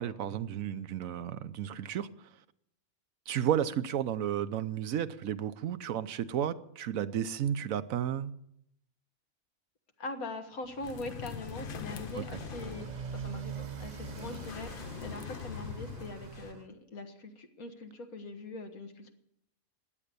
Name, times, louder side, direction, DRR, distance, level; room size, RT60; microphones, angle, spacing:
voice 1, 0.0-2.1 3.3-8.3 12.1-12.2, right 10 dB, 75° right, 13 dB, 1.1 m, -32 dB
voice 2, 10.0-19.1, left 2 dB, 90° left, 5 dB, 2.1 m, -42 dB
Motorcycle, 10.6-16.7, right 7 dB, 40° right, 0.7 m, -44 dB
sound 1, 10.8-16.5, left 8 dB, 50° left, 0.7 m, -43 dB
16.0 x 10.0 x 6.8 m, 0.75 s
omnidirectional pair, 1.4 m